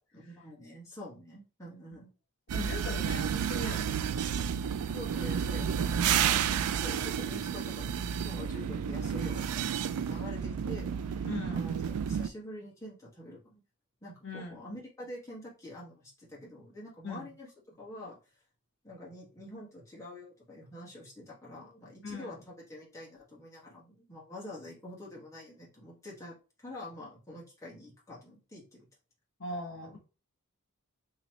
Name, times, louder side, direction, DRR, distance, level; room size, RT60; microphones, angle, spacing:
voice 1, 0.1-2.1 4.8-6.0 6.3-13.6 14.0-18.2 18.8-26.3 26.6-28.9, left 1 dB, 15° left, -5 dB, 1.3 m, -46 dB
voice 2, 2.5-4.1 11.3-11.7 14.2-14.7 17.0-17.3 22.0-22.4 29.4-30.0, left 2 dB, 55° left, 0 dB, 1.0 m, -40 dB
sound 1, 2.5-12.3, right 8 dB, 80° right, 0.3 m, -31 dB
4.0 x 3.0 x 3.0 m, 0.33 s
head